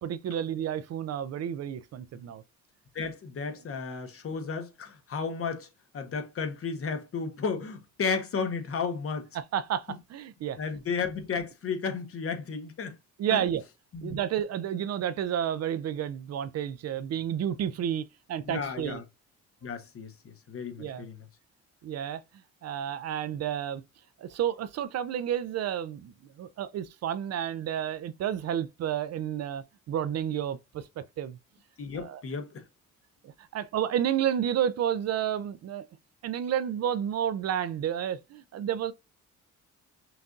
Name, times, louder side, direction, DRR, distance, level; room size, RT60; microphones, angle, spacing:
voice 1, 0.0-2.4 9.3-10.6 13.2-13.6 14.0-19.0 20.8-21.1 21.8-22.2 22.6-23.8 24.2-30.8 31.2-31.4 31.9-32.2 33.2-35.8 36.2-38.9, right 9 dB, 55° right, 0.5 m, -31 dB
voice 2, 2.9-5.7 5.9-9.3 10.6-13.0 13.3-13.4 13.9-14.2 18.4-19.0 19.6-21.2 31.8-32.6, left 5 dB, 50° left, 1.0 m, -33 dB
5.8 x 2.6 x 2.4 m
cardioid pair, 90°, 30 cm